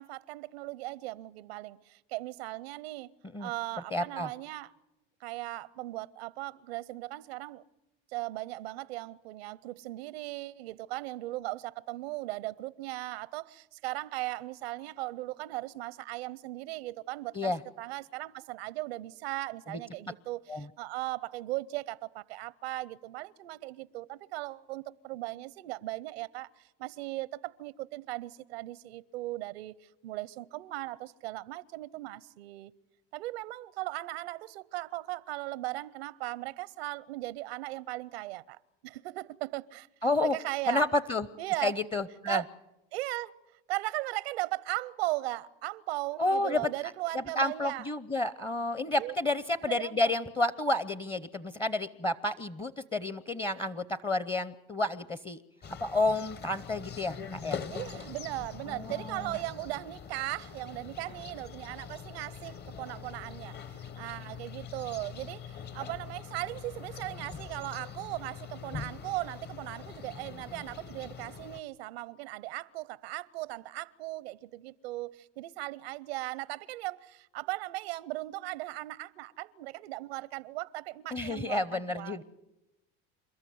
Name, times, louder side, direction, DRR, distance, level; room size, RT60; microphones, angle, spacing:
voice 1, 0.0-3.1 3.4-4.7 5.2-7.6 8.1-29.8 30.0-32.7 33.1-39.9 40.2-40.9 41.4-41.7 42.3-42.5 42.9-43.4 43.7-47.9 49.0-49.2 49.6-50.1 57.7-82.2, right 19 dB, 90° right, 0.7 m, -38 dB
voice 2, 3.9-4.3 17.3-17.6 20.5-20.6 40.0-40.4 40.7-41.3 41.6-42.4 46.2-46.7 47.1-55.4 55.8-57.6 58.7-59.3 81.1-82.2, left 2 dB, 15° left, 0.8 m, -30 dB
sound 1, 55.6-71.6, left 7 dB, 35° left, 1.2 m, -43 dB
28.5 x 13.5 x 9.4 m
supercardioid pair, 100°, 30 cm